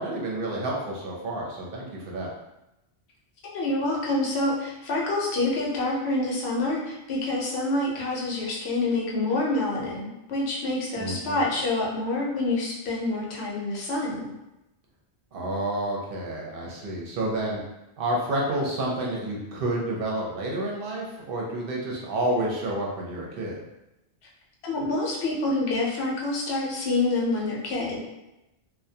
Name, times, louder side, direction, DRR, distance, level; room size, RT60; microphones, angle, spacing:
voice 1, 0.0-2.3 11.0-11.5 15.3-17.6 18.0-23.5, right 1 dB, 60° right, -2 dB, 0.7 m, -29 dB
voice 2, 3.4-14.3 24.6-28.0, left 2 dB, 70° left, -3 dB, 0.8 m, -27 dB
2.2 x 2.1 x 2.6 m, 0.94 s
omnidirectional pair, 1.2 m